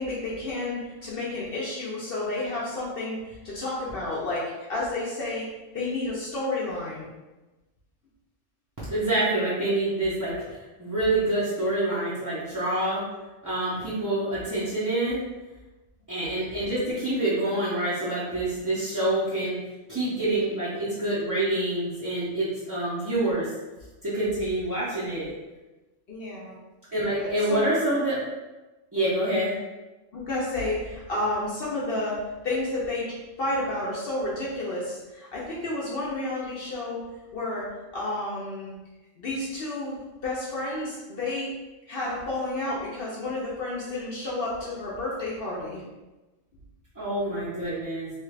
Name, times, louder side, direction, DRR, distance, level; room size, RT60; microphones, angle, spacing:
voice 1, 0.0-5.5 5.7-7.1 26.1-26.6 27.2-27.6 30.1-33.1 33.4-37.0 37.3-37.7 37.9-38.7 39.2-39.9 40.2-41.5 41.9-45.8, left 2 dB, 60° left, -6 dB, 0.8 m, -31 dB
voice 2, 8.9-13.0 13.4-15.2 16.1-19.6 19.9-23.5 24.0-25.3 26.9-28.2 28.9-29.5 47.0-48.1, right 1 dB, 20° right, -11 dB, 0.5 m, -27 dB
3.2 x 2.4 x 3.1 m, 1.1 s
omnidirectional pair, 1.3 m